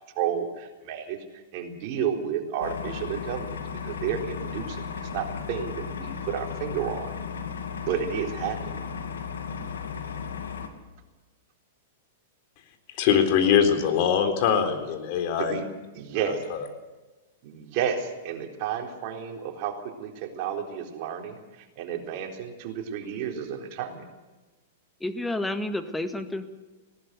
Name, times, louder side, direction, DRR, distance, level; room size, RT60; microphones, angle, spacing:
voice 1, 0.2-7.1 7.7-8.8 15.4-15.6 15.9-16.4 17.4-24.0, right 8 dB, 50° right, 2 dB, 3.9 m, -32 dB
sound 1, 2.6-10.7, left 6 dB, 75° left, 2.6 m, -35 dB
voice 2, 13.0-15.6 16.3-16.7, left 8 dB, 50° left, 6 dB, 3.8 m, -23 dB
voice 3, 25.0-26.4, left 1 dB, 5° left, 8 dB, 1.8 m, -30 dB
19.5 x 18.0 x 8.1 m, 1.2 s
hypercardioid pair, 105°, 0 cm